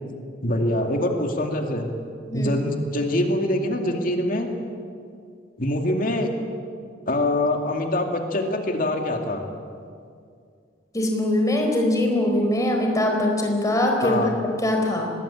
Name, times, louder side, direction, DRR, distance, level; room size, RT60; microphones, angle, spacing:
voice 1, 0.4-1.9 2.3-4.5 5.6-6.3 7.1-9.4 14.0-14.3, left 1 dB, 45° left, 3 dB, 2.4 m, -24 dB
voice 2, 10.9-15.1, left 1 dB, 20° left, 1 dB, 4.4 m, -22 dB
24.5 x 20.0 x 8.9 m, 2.3 s
head